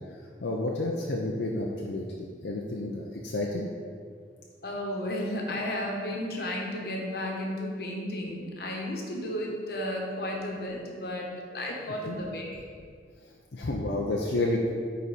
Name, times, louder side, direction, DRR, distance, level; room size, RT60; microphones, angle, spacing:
voice 1, 0.4-3.7 12.1-12.2 13.5-14.7, left 2 dB, 85° left, -1 dB, 0.6 m, -30 dB
voice 2, 4.6-12.6, left 1 dB, 60° left, 0 dB, 1.2 m, -33 dB
9.3 x 4.1 x 4.2 m, 2.1 s
head